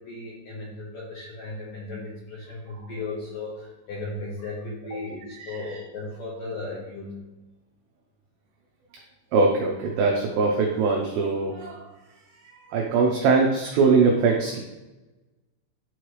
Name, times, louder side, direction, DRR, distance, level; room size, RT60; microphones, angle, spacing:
voice 1, 0.0-7.2, left 2 dB, 80° left, -5 dB, 1.9 m, -36 dB
voice 2, 9.3-11.9 12.4-14.6, right 4 dB, 85° right, 0 dB, 2.4 m, -22 dB
11.0 x 4.8 x 3.1 m, 1.1 s
omnidirectional pair, 5.8 m